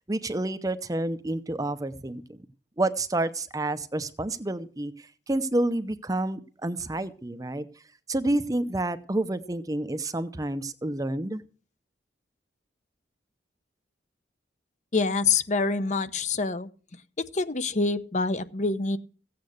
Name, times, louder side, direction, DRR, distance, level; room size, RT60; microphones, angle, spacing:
voice 1, 0.1-2.2 2.8-7.7 8.1-11.4, right 2 dB, 20° right, 12 dB, 0.7 m, -29 dB
voice 2, 14.9-16.7 17.2-19.0, left 4 dB, 40° left, 13 dB, 0.8 m, -26 dB
15.5 x 8.6 x 6.5 m, 0.40 s
head